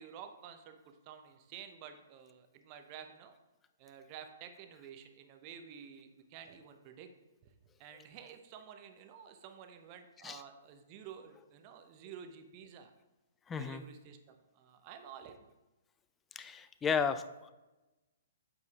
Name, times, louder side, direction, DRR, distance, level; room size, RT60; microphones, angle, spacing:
voice 1, 0.0-3.4 3.8-7.1 7.4-7.5 7.8-12.9 13.6-15.4, right 8 dB, 35° right, 7 dB, 0.7 m, -51 dB
voice 2, 13.5-13.8 16.4-17.5, left 6 dB, 15° left, 10 dB, 0.4 m, -34 dB
8.1 x 6.7 x 2.4 m, 1.1 s
figure-of-eight pair, 120°, 0 cm